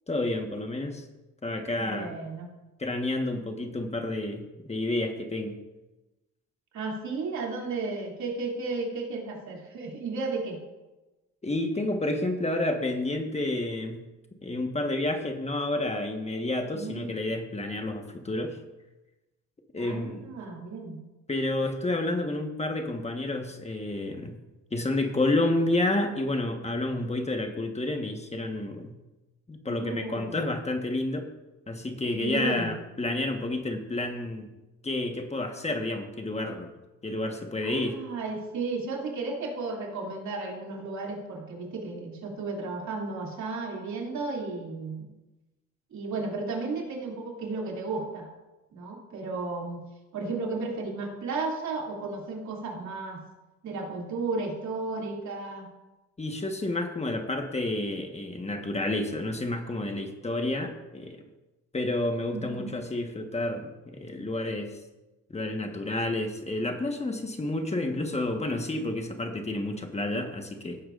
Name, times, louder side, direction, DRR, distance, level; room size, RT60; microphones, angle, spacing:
voice 1, 0.1-1.0 1.4-2.1 2.8-5.6 11.4-14.0 14.4-18.6 19.7-20.3 21.3-24.4 24.7-29.0 29.5-31.3 31.7-34.5 34.8-36.7 37.0-38.0 56.2-61.2 61.7-64.8 65.3-70.8, left 2 dB, 20° left, 4 dB, 1.4 m, -30 dB
voice 2, 1.8-2.5 6.7-10.6 16.7-17.1 19.8-21.0 29.7-30.4 32.2-32.7 37.6-45.1 45.9-48.3 48.7-49.8 50.1-53.2 53.6-55.7 62.3-62.8, right 3 dB, 70° right, -1 dB, 2.9 m, -34 dB
17.0 x 8.7 x 2.6 m, 1.1 s
cardioid pair, 90°, 30 cm